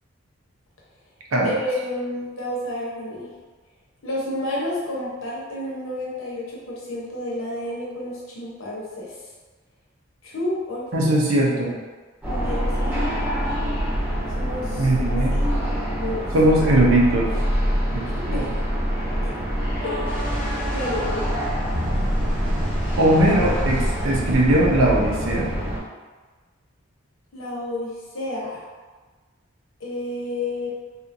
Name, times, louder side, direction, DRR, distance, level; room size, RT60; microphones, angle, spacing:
voice 1, 1.4-3.3 4.0-9.1 10.2-11.1 12.3-13.0 14.3-14.9 15.3-15.4 16.0-16.3 18.3-18.6 19.2-19.3 19.8-20.1 20.7-21.2 27.3-28.6 29.8-30.7, left 1 dB, 75° left, -5 dB, 0.8 m, -30 dB
voice 2, 10.9-11.7 14.8-15.4 16.3-17.3 17.9-18.4 23.0-25.4, right 1 dB, 80° right, -3 dB, 0.6 m, -19 dB
sound 1, 12.2-25.8, equal, 10° right, 0.9 m, -25 dB
sound 2, 20.0-25.1, equal, 5° left, 0.4 m, -36 dB
2.8 x 2.4 x 2.5 m, 1.3 s
head